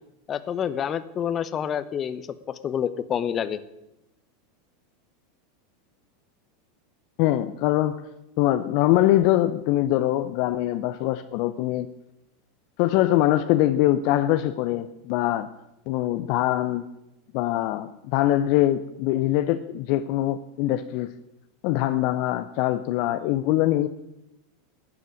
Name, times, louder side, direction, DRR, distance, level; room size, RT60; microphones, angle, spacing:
voice 1, 0.3-2.2 2.5-3.6, left 8 dB, 35° left, 14 dB, 1.0 m, -28 dB
voice 2, 7.2-8.0 8.4-11.9 12.8-15.5 15.9-16.9 17.3-21.1 21.6-23.9, left 14 dB, 55° left, 11 dB, 0.6 m, -23 dB
12.5 x 7.6 x 9.6 m, 0.89 s
hypercardioid pair, 90°, 0 cm